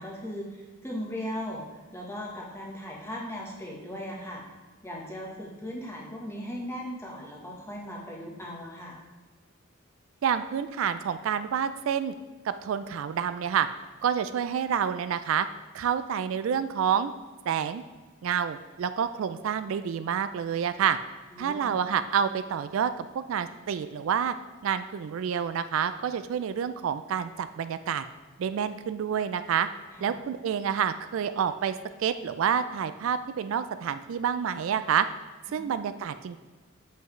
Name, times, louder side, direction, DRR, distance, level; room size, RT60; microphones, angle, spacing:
voice 1, 0.0-1.6 1.9-4.4 4.8-9.0 21.3-21.8 29.9-30.2 35.5-35.8, equal, 10° left, -2 dB, 1.1 m, -38 dB
voice 2, 10.2-12.1 12.4-13.7 14.0-15.5 15.7-17.1 17.5-17.8 18.2-21.0 21.4-24.3 24.6-28.0 28.4-29.7 30.0-35.1 35.5-36.4, right 8 dB, 75° right, 11 dB, 0.3 m, -28 dB
7.9 x 5.5 x 3.1 m, 1.3 s
head